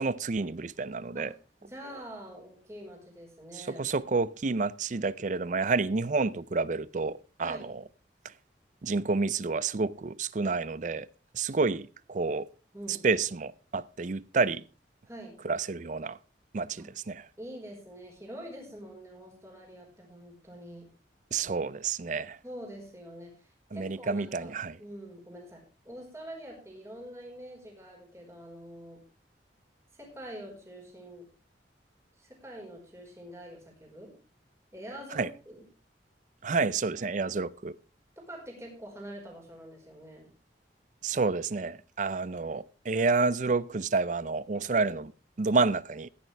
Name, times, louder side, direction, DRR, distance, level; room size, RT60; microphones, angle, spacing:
voice 1, 0.0-1.3 3.6-7.8 8.8-11.1 11.3-12.5 12.9-14.6 15.4-16.2 16.5-17.2 21.3-22.4 23.7-24.8 35.1-35.3 36.4-37.8 41.0-45.1 45.4-46.1, right 4 dB, 45° right, 0.5 m, -29 dB
voice 2, 1.6-3.9 7.4-7.7 11.4-11.8 12.7-13.1 15.0-15.4 16.8-16.9 17.4-20.8 22.4-24.5 24.8-29.0 29.9-31.3 32.2-34.1 34.7-35.7 38.2-40.3, equal, 15° right, 4.8 m, -45 dB
15.5 x 10.5 x 3.4 m
head